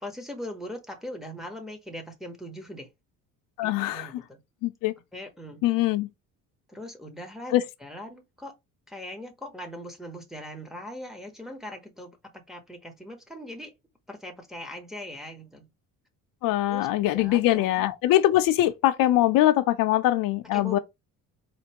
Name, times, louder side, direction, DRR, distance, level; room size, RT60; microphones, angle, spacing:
voice 1, 0.0-2.9 3.6-4.4 5.1-5.6 6.7-8.5 8.9-13.7 14.1-15.7 16.7-17.8 20.5-20.8, left 1 dB, ahead, 0.8 m, -40 dB
voice 2, 3.6-4.2 4.6-4.9 5.6-6.1 7.5-7.6 16.4-20.8, left 14 dB, 75° left, 0.6 m, -22 dB
4.4 x 2.5 x 2.9 m
cardioid pair, 135°, 34 cm